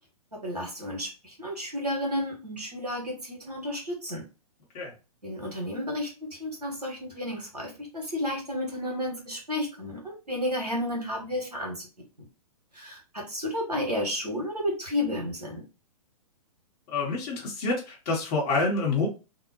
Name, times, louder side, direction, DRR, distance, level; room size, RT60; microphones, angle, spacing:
voice 1, 0.4-4.2 5.2-11.9 12.7-15.6, left 1 dB, 85° right, 0 dB, 1.3 m, -32 dB
voice 2, 16.9-19.1, left 3 dB, 30° left, -2 dB, 0.8 m, -27 dB
2.6 x 2.1 x 2.8 m, 0.30 s
figure-of-eight pair, 115°, 20 cm